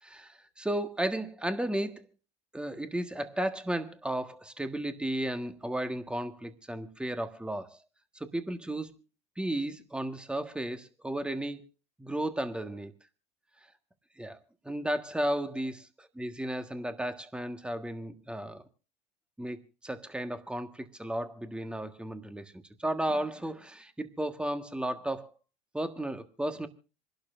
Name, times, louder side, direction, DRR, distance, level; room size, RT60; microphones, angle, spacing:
voice 1, 0.0-2.1 2.5-7.8 8.1-8.9 9.4-11.6 12.0-12.9 14.2-14.4 14.6-15.8 16.2-18.6 19.4-25.3 25.7-26.7, right 1 dB, 5° right, 8 dB, 1.5 m, -34 dB
27.0 x 12.0 x 2.6 m, 0.34 s
hypercardioid pair, 90°, 17 cm